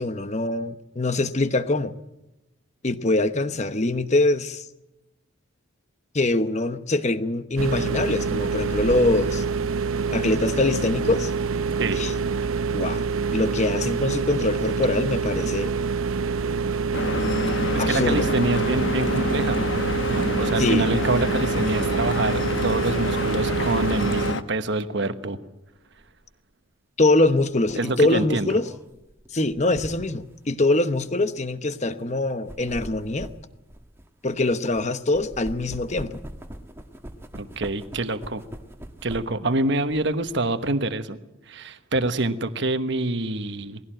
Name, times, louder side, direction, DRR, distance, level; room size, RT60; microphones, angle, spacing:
voice 1, 0.0-2.0 2.8-4.7 6.1-9.4 10.1-11.3 12.0-12.1 12.7-13.0 13.3-15.7 17.8-18.3 20.6-20.9 27.0-28.7 29.3-33.3 34.2-36.2, left 2 dB, 35° left, 1.0 m, -23 dB
sound 1, 7.6-24.3, right 5 dB, 85° right, 0.8 m, -26 dB
Stream / Boat Water vehicle, 16.9-24.4, left 3 dB, 60° left, 1.1 m, -28 dB
voice 2, 17.7-19.6 20.1-25.4 27.8-28.6 37.3-38.4 39.0-41.2 41.5-43.8, right 2 dB, 55° right, 1.2 m, -26 dB
sound 2, 26.0-26.2 27.4-30.3 31.0-31.2 32.2-34.8 35.1-39.5 39.9-40.7, right 1 dB, 10° right, 1.5 m, -41 dB
20.0 x 16.0 x 9.0 m
head